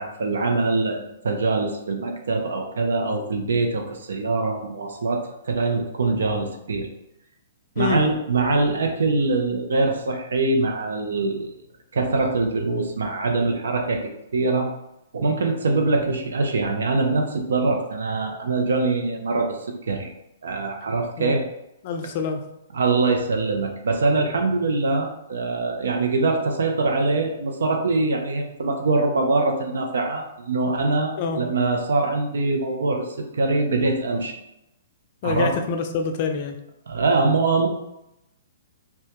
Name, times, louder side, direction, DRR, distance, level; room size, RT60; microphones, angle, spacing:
voice 1, 0.0-6.9 7.8-11.5 11.9-14.7 15.1-20.1 20.4-21.4 22.7-34.4 35.2-35.5 36.9-37.7, right 3 dB, 80° right, 3 dB, 0.5 m, -23 dB
voice 2, 21.8-22.4 31.2-31.4 35.2-36.6, left 5 dB, 45° left, 5 dB, 0.3 m, -26 dB
2.2 x 2.1 x 2.7 m, 0.88 s
hypercardioid pair, 140°, 0 cm